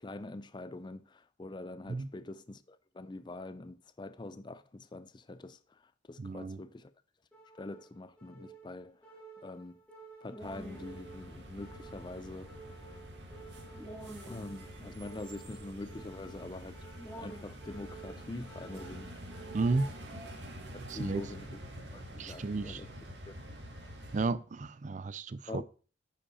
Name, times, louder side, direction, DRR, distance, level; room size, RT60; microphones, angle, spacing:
voice 1, 0.0-5.6 6.1-6.9 7.6-9.0 9.4-9.8 10.2-12.5 14.3-16.8 17.2-19.1 20.7-21.6 21.9-22.9 23.3-23.4 25.5-25.6, left 2 dB, 25° left, 0.4 m, -44 dB
voice 2, 6.2-6.6 19.5-19.9 20.9-21.2 22.2-22.8 24.1-25.6, right 3 dB, 40° right, 0.4 m, -33 dB
sound 1, 7.3-20.3, right 2 dB, 5° left, 1.9 m, -51 dB
sound 2, 10.4-24.3, right 1 dB, 60° right, 1.5 m, -47 dB
9.5 x 5.2 x 4.3 m
head